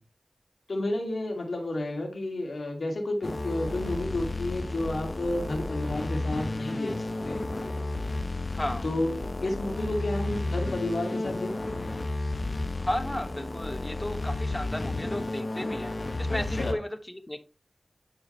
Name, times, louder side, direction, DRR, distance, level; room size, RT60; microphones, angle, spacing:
voice 1, 0.7-7.4 8.8-11.5 11.8-11.9 16.3-16.8, left 1 dB, 80° left, 2 dB, 2.5 m, -31 dB
sound 1, 3.2-16.7, left 2 dB, 55° left, 1.1 m, -32 dB
voice 2, 8.5-8.9 12.7-15.9 16.2-17.4, left 1 dB, 20° left, 9 dB, 1.2 m, -34 dB
9.6 x 4.9 x 3.3 m, 0.29 s
cardioid pair, 45°, 0 cm